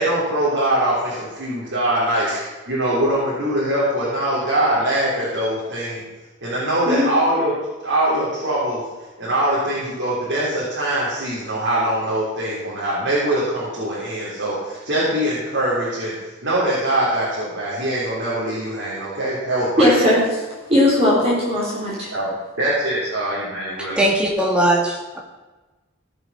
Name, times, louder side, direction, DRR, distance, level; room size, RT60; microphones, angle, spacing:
voice 1, 0.0-6.0 6.4-7.5 7.8-8.8 9.2-16.1 16.4-20.1 22.1-22.3 22.6-24.0, right 1 dB, 65° right, -8 dB, 3.5 m, -22 dB
voice 2, 19.8-20.2 20.7-22.1, left 1 dB, 30° right, -7 dB, 4.2 m, -17 dB
voice 3, 24.0-25.2, right 1 dB, 5° right, -2 dB, 2.2 m, -19 dB
17.0 x 6.8 x 5.9 m, 1.2 s
head